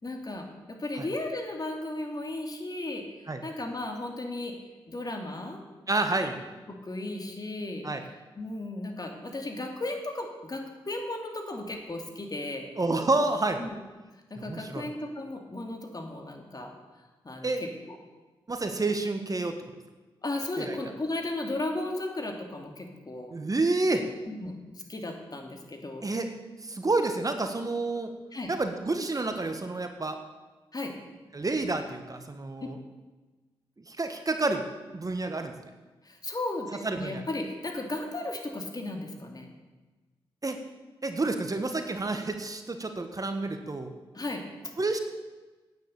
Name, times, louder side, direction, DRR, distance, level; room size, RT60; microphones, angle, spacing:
voice 1, 0.0-3.0 3.4-4.5 4.9-5.6 6.7-7.9 8.4-12.7 13.6-13.8 14.3-16.7 17.2-18.0 20.2-23.3 24.3-26.1 28.3-28.5 30.7-31.0 36.0-39.5 44.1-44.4, left 2 dB, 40° left, 3 dB, 2.7 m, -35 dB
voice 2, 5.9-6.4 7.8-8.0 12.8-13.6 14.5-14.9 17.4-17.6 18.5-19.6 20.6-20.8 23.3-24.1 26.0-26.3 26.6-28.1 28.5-30.2 31.3-32.8 33.9-34.6 34.9-35.5 36.8-37.3 40.4-40.6 41.0-43.9 44.8-45.0, right 2 dB, 35° right, 7 dB, 1.5 m, -29 dB
9.5 x 9.4 x 8.3 m, 1.2 s
supercardioid pair, 40°, 10 cm